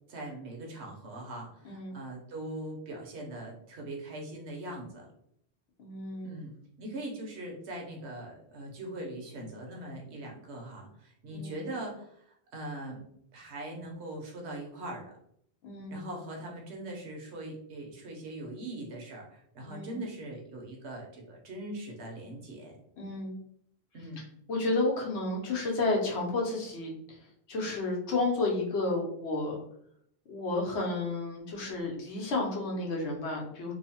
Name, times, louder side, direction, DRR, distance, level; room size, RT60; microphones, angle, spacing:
voice 1, 0.1-5.1 6.2-13.0 13.3-15.1 15.9-22.8 23.9-24.2, right 1 dB, 80° right, 0 dB, 1.0 m, -41 dB
voice 2, 1.6-2.0 5.8-6.4 11.3-11.6 15.6-16.0 19.7-20.1 23.0-23.4 24.5-27.2 27.5-29.6 30.3-33.7, left 2 dB, 90° left, 0 dB, 1.0 m, -31 dB
2.9 x 2.0 x 2.8 m, 0.69 s
omnidirectional pair, 1.1 m